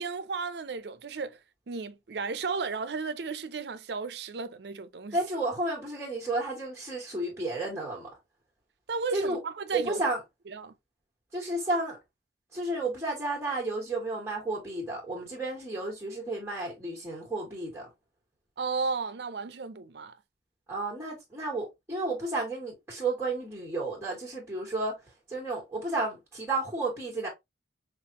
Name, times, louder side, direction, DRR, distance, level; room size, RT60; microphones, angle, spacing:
voice 1, 0.0-1.4 1.7-5.2 8.9-10.0 10.5-10.7 18.6-20.2, right 4 dB, 70° right, 0.5 m, -34 dB
voice 2, 5.1-8.1 9.1-9.4 9.7-10.2 11.3-12.0 12.5-17.9 20.7-25.0 25.3-27.3, right 2 dB, 10° right, 1.7 m, -32 dB
5.4 x 2.5 x 2.8 m
head